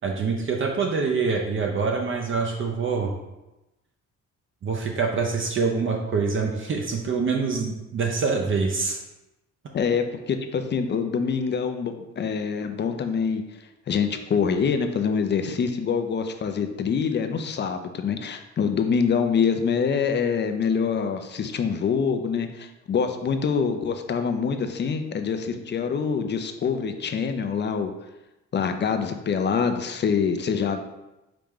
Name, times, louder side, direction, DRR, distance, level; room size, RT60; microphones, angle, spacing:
voice 1, 0.0-3.1 4.6-9.0, right 4 dB, 40° right, 1 dB, 0.7 m, -25 dB
voice 2, 9.7-13.4 13.9-27.9 28.5-30.8, left 6 dB, 35° left, 7 dB, 0.5 m, -25 dB
4.9 x 2.9 x 3.7 m, 0.98 s
cardioid pair, 90°, 30 cm